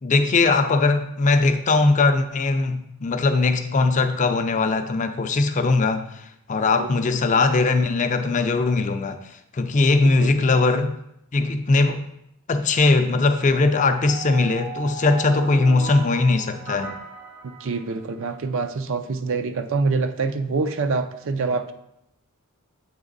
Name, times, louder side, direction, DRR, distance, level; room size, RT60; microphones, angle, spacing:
voice 1, 0.0-6.1 6.5-9.2 9.5-10.9 11.3-12.0 12.5-16.9, left 3 dB, 35° left, 7 dB, 0.4 m, -20 dB
sound 1, 14.0-18.3, right 5 dB, 85° right, 2.1 m, -37 dB
voice 2, 17.4-21.7, right 4 dB, 60° right, 8 dB, 0.5 m, -25 dB
8.0 x 3.4 x 3.9 m, 0.77 s
head